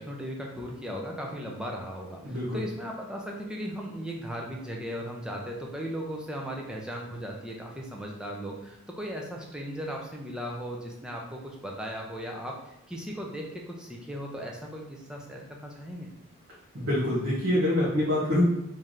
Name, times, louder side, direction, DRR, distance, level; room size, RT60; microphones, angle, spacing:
voice 1, 0.0-16.1, equal, 5° right, -1 dB, 0.4 m, -37 dB
voice 2, 2.2-2.6 16.7-18.4, left 1 dB, 70° right, -8 dB, 1.0 m, -26 dB
3.2 x 2.7 x 3.6 m, 0.84 s
head